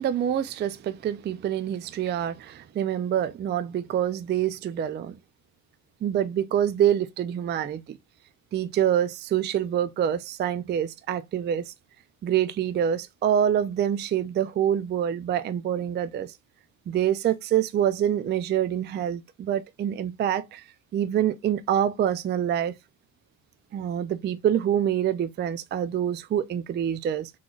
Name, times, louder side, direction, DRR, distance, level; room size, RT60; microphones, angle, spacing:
voice 1, 0.0-5.2 6.0-8.0 8.5-11.7 12.2-16.3 16.9-20.6 20.9-22.7 23.7-27.3, right 10 dB, 25° right, 0.4 m, -26 dB
3.8 x 3.1 x 2.3 m
cardioid pair, 100°, 41 cm